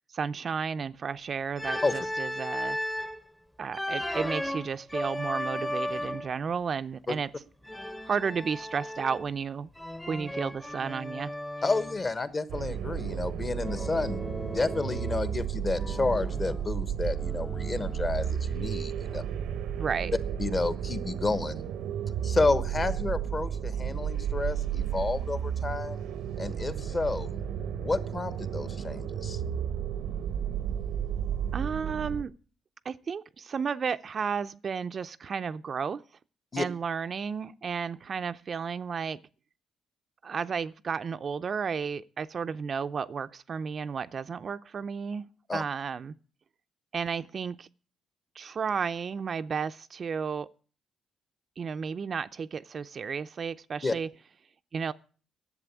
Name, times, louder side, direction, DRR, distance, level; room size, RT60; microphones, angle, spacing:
voice 1, 0.1-2.8 3.6-7.3 8.1-9.7 10.1-11.3 19.8-20.1 31.5-32.3 32.8-36.0 36.6-39.2 40.2-45.3 45.5-46.1 46.9-47.7 48.4-50.5 51.6-54.1 54.7-54.9, right 6 dB, 45° right, 0.5 m, -33 dB
Organ, 1.6-3.2 3.7-6.4 7.6-9.4 9.8-12.1 13.6-15.4 15.7-18.5, left 1 dB, 10° left, 0.8 m, -36 dB
voice 2, 11.6-19.2 20.4-21.6 22.2-26.0 26.4-27.3 27.8-29.4 36.5-36.6 45.5-45.6 53.8-53.9, left 3 dB, 30° left, 1.1 m, -30 dB
sound 1, 12.5-32.2, right 8 dB, 85° right, 0.8 m, -33 dB
11.0 x 7.5 x 8.2 m
cardioid pair, 90°, 0 cm